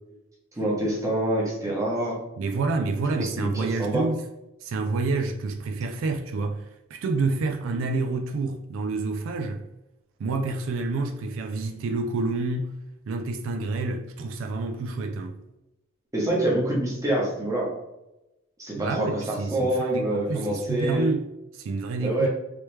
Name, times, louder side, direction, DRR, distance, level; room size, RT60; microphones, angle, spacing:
voice 1, 0.6-2.2 3.2-4.0 16.1-17.7 18.6-21.1 22.0-22.3, right 1 dB, 15° right, 0.9 m, -26 dB
voice 2, 2.4-4.2 4.6-9.6 10.2-12.7 13.1-15.4 18.8-22.3, right 3 dB, 70° right, 0.3 m, -28 dB
3.1 x 3.0 x 3.1 m
head